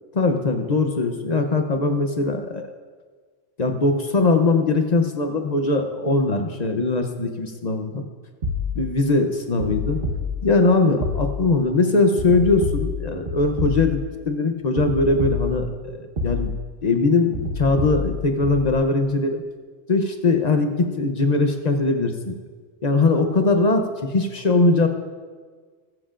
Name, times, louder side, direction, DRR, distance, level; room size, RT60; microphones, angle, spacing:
voice 1, 0.1-2.7 3.6-8.0 8.7-10.0 10.4-16.5 16.8-19.4 19.9-22.3 22.8-24.9, left 3 dB, 40° left, 5 dB, 0.8 m, -21 dB
sound 1, 8.4-9.1 9.6-10.7 11.0-11.6 12.2-14.2 14.8-15.8 16.2-16.8 17.3-18.7, left 4 dB, 50° right, 1.4 m, -28 dB
19.0 x 7.7 x 2.5 m, 1.5 s
omnidirectional pair, 1.2 m